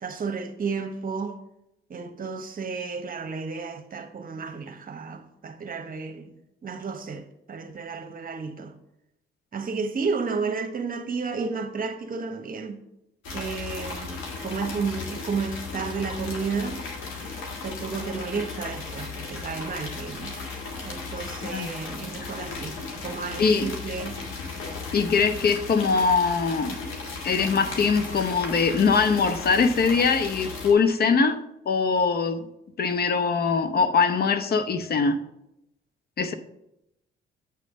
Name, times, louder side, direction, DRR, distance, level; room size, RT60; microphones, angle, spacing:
voice 1, 0.0-1.4 1.9-6.3 6.6-8.7 9.5-12.8 13.3-16.8 17.6-20.4 20.8-24.2, right 5 dB, 45° right, 1.1 m, -32 dB
sound 1, 13.2-30.7, left 4 dB, 75° left, 1.7 m, -36 dB
voice 2, 23.4-23.7 24.9-26.8 27.2-31.4 31.7-32.5 32.8-35.2 36.2-36.3, left 5 dB, 50° left, 0.8 m, -22 dB
8.2 x 3.3 x 6.3 m
supercardioid pair, 65°, 21 cm